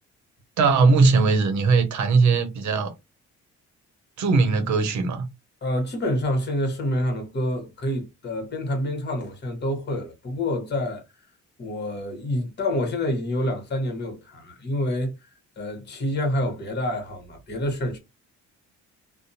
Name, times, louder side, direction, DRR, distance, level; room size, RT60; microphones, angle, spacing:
voice 1, 0.6-2.9 4.2-5.3, right 4 dB, 65° right, 0.8 m, -19 dB
voice 2, 5.6-11.0 11.6-15.3 15.6-18.0, left 1 dB, 35° left, 1.1 m, -27 dB
2.5 x 2.2 x 2.7 m
cardioid pair, 90°, 30 cm